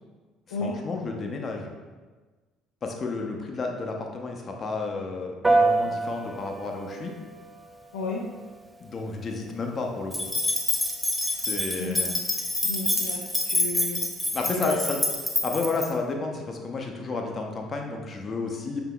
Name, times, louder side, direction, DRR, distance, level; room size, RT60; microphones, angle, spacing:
voice 1, 0.6-1.7 2.8-7.1 8.8-10.3 11.3-12.2 14.3-15.0 15.4-18.8, left 3 dB, 40° left, 2 dB, 0.6 m, -31 dB
Piano, 5.4-15.2, right 3 dB, 15° right, 0.4 m, -31 dB
sound 1, 10.1-15.9, left 1 dB, 5° left, 1.0 m, -27 dB
voice 2, 12.6-14.0 14.5-14.8, left 3 dB, 80° left, -4 dB, 0.5 m, -32 dB
5.6 x 3.8 x 2.2 m, 1.3 s
figure-of-eight pair, 55°, 0 cm